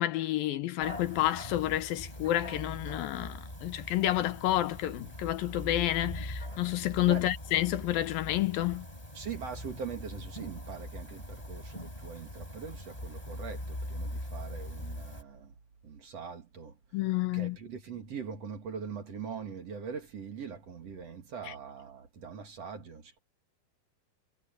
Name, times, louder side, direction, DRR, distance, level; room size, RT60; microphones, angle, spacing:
voice 1, 0.0-8.9 16.9-17.6, left 14 dB, 80° left, 2.6 m, -29 dB
sound 1, 0.8-15.2, left 1 dB, 10° left, 6.8 m, -42 dB
voice 2, 7.0-7.3 9.1-15.5 15.8-16.8 17.3-23.2, right 6 dB, 50° right, 2.8 m, -42 dB
omnidirectional pair, 4.3 m